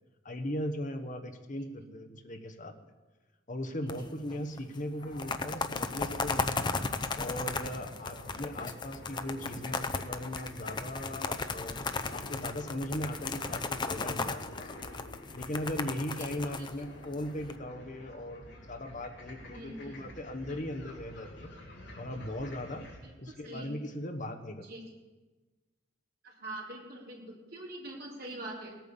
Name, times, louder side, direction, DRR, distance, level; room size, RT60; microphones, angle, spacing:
voice 1, 0.2-2.7 3.5-6.8 7.2-11.8 12.1-14.9 15.3-21.5 22.0-22.9 23.2-24.7, left 1 dB, 40° left, 6 dB, 1.1 m, -38 dB
sound 1, 3.9-4.6 5.0-17.5, left 4 dB, 25° left, 0.6 m, -35 dB
sound 2, 5.0-23.0, left 1 dB, 60° left, 3.1 m, -49 dB
voice 2, 16.2-16.5 19.5-20.1 23.0-23.1 23.4-23.7 24.6-24.8 26.2-28.7, right 1 dB, 50° right, -4 dB, 4.1 m, -44 dB
18.0 x 9.1 x 7.0 m, 1.2 s
head